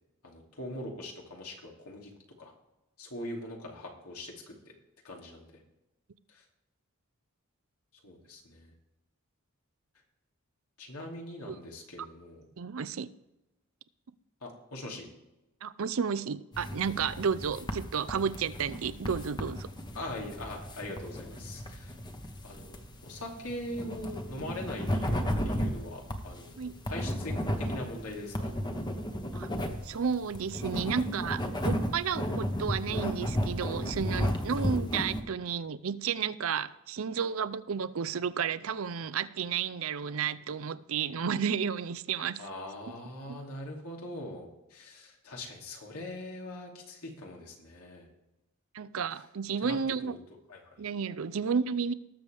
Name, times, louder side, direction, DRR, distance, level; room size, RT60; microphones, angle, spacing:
voice 1, 0.2-2.1 2.4-2.5 3.0-4.6 5.0-5.5 6.3-6.4 8.0-8.7 10.8-12.4 14.4-15.1 19.9-22.0 22.4-22.8 23.0-28.6 42.4-48.1 49.1-49.2 49.6-49.8 50.0-50.2 50.5-50.8, left 1 dB, 85° left, 2.7 m, -42 dB
voice 2, 12.6-13.1 15.6-19.7 26.6-26.7 29.3-29.5 29.8-42.4 43.3-43.4 48.7-50.1 50.8-51.9, right 6 dB, 65° right, 0.5 m, -32 dB
sound 1, 16.5-35.2, equal, 20° left, 1.0 m, -34 dB
19.0 x 7.0 x 3.4 m
head